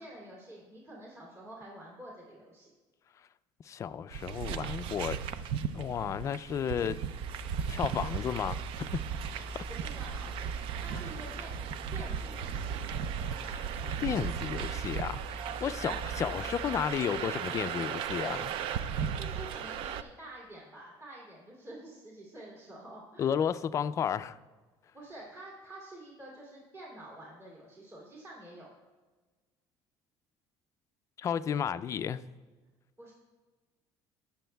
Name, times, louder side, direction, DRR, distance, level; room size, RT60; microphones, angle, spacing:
voice 1, 0.0-2.7 9.7-11.6 11.9-12.8 15.8-16.0 19.2-23.3 24.9-28.7 33.0-33.1, right 1 dB, 30° right, -4 dB, 2.7 m, -48 dB
voice 2, 3.7-5.2 5.7-7.0 7.7-8.6 8.9-9.0 13.4-13.6 14.0-18.5 23.2-24.4 31.2-32.2, left 8 dB, 30° left, 13 dB, 0.3 m, -32 dB
sound 1, 4.1-20.0, right 8 dB, 65° right, 0.5 m, -36 dB
Engine, 7.2-16.8, right 1 dB, 15° right, 2.5 m, -44 dB
19.0 x 7.0 x 2.3 m, 1.3 s
cardioid pair, 140°, 10 cm